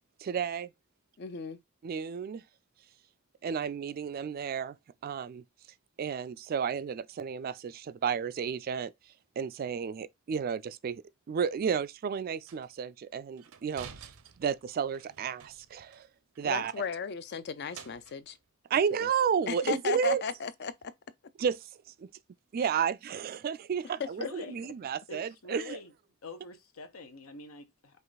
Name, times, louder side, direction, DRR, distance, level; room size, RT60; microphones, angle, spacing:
voice 1, 0.2-0.7 1.8-2.4 3.4-4.8 5.0-5.4 6.0-8.9 9.4-14.1 14.4-16.1 16.4-16.7 18.7-20.2 21.4-21.7 22.0-22.1 22.5-25.8, right 7 dB, 45° right, 0.3 m, -32 dB
voice 2, 1.2-1.6 16.4-18.4 19.0-19.1 19.5-20.9 24.0-24.5, left 6 dB, 55° left, 0.5 m, -35 dB
sound 1, 12.5-12.7 13.4-16.0 16.3-16.4 16.7-18.4, right 7 dB, 80° right, 0.6 m, -51 dB
voice 3, 24.2-24.6 25.1-25.9 26.2-28.0, left 4 dB, 80° left, 0.9 m, -45 dB
5.4 x 2.5 x 4.0 m
head